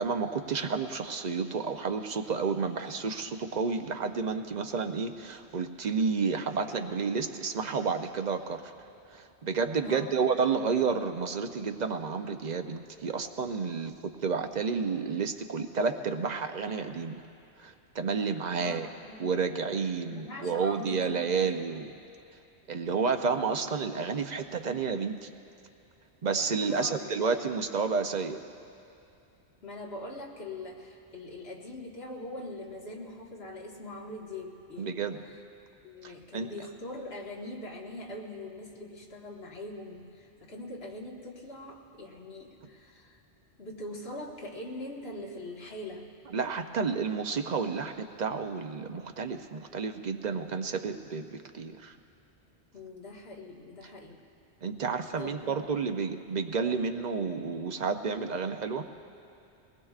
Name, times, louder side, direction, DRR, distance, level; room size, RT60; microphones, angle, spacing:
voice 1, 0.0-8.7 9.1-17.2 17.6-18.9 19.2-21.9 22.7-25.3 26.2-28.4 34.8-35.2 36.0-36.5 46.3-51.9 54.6-58.8, right 5 dB, 50° right, 7 dB, 0.6 m, -31 dB
voice 2, 9.8-10.2 18.6-19.4 20.0-21.6 26.7-27.3 27.7-28.1 29.6-35.3 35.8-43.2 43.6-46.1 52.7-54.2 55.2-55.9, left 1 dB, 65° left, -2 dB, 1.8 m, -42 dB
21.5 x 19.5 x 2.4 m, 2.6 s
omnidirectional pair, 1.1 m